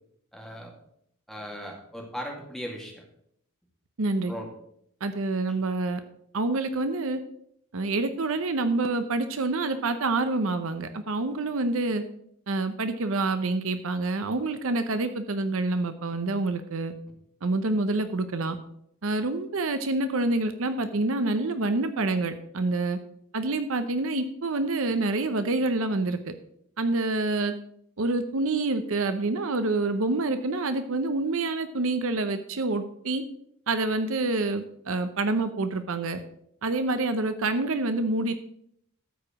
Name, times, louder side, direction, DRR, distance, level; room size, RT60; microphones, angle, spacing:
voice 1, 0.3-0.7 1.3-3.0 4.3-4.5, equal, ahead, -1 dB, 2.2 m, -37 dB
voice 2, 4.0-4.3 5.0-6.0 6.3-7.2 7.7-12.0 12.5-16.9 17.4-18.6 19.0-23.0 23.3-26.3 26.8-27.5 28.0-33.2 33.7-36.2 36.6-38.3, right 2 dB, 60° right, 9 dB, 0.7 m, -27 dB
13.0 x 4.9 x 6.1 m, 0.71 s
head